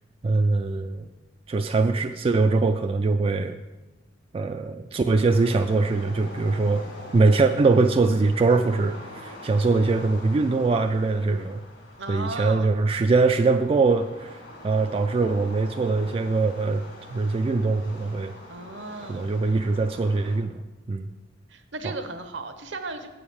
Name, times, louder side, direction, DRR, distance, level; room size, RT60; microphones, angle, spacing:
voice 1, 0.2-1.1 1.5-3.6 4.3-6.9 7.1-11.6 12.1-16.8 17.1-18.3 19.1-21.1 21.8-21.9, right 3 dB, 30° right, 6 dB, 0.3 m, -22 dB
sound 1, 5.1-20.4, left 1 dB, 70° left, 2.2 m, -45 dB
voice 2, 12.0-12.7 18.5-19.3 21.5-23.1, right 3 dB, 70° right, 8 dB, 0.9 m, -35 dB
8.0 x 4.9 x 7.0 m, 1.1 s
head